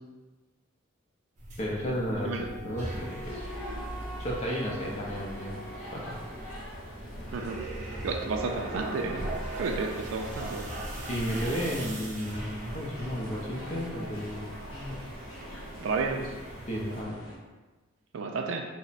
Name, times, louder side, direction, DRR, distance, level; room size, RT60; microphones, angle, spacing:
sound 1, 1.4-17.0, right 1 dB, 35° right, 0.6 m, -40 dB
voice 1, 1.6-3.5 4.2-6.2 11.1-15.0 16.7-17.2, equal, 35° left, -3 dB, 0.5 m, -33 dB
Wind instrument woodwind instrument, 2.1-6.4, right 1 dB, 5° right, 0.8 m, -46 dB
sound 2, 3.2-17.4, left 1 dB, 80° left, 0.8 m, -45 dB
voice 2, 7.3-9.3 9.6-10.7 15.8-16.3 18.1-18.6, right 4 dB, 75° right, 3 dB, 0.3 m, -32 dB
3.2 x 2.0 x 3.9 m, 1.2 s
head